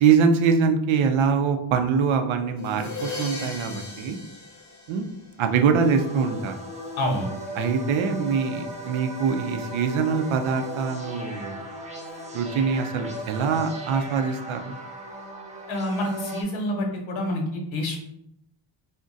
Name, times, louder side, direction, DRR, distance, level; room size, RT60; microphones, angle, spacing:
voice 1, 0.0-4.2 4.9-5.1 5.4-6.5 7.6-11.6 12.3-14.7, right 6 dB, 75° right, 6 dB, 0.5 m, -23 dB
sound 1, 2.6-5.5, left 2 dB, 35° left, 0.7 m, -37 dB
sound 2, 5.8-16.4, right 1 dB, 15° right, 0.4 m, -37 dB
voice 2, 7.0-7.3 15.7-18.0, left 1 dB, 70° left, 1 dB, 0.9 m, -27 dB
2.5 x 2.2 x 3.8 m, 0.78 s
cardioid pair, 125°, 48 cm